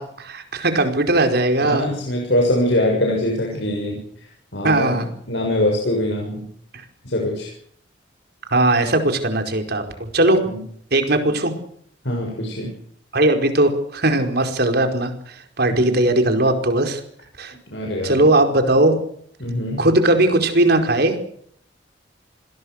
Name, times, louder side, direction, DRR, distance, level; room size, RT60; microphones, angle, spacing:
voice 1, 0.0-1.9 4.6-5.1 8.5-10.4 10.9-11.5 13.1-17.0 17.4-17.5 18.0-18.9 19.8-21.2, right 2 dB, 60° right, 6 dB, 4.8 m, -18 dB
voice 2, 1.6-4.3 4.5-6.4 7.0-7.5 10.5-10.6 12.0-12.7 15.7-15.9 17.7-18.3 19.4-19.9, left 1 dB, 75° left, 0 dB, 6.8 m, -23 dB
28.5 x 21.5 x 6.6 m, 0.66 s
head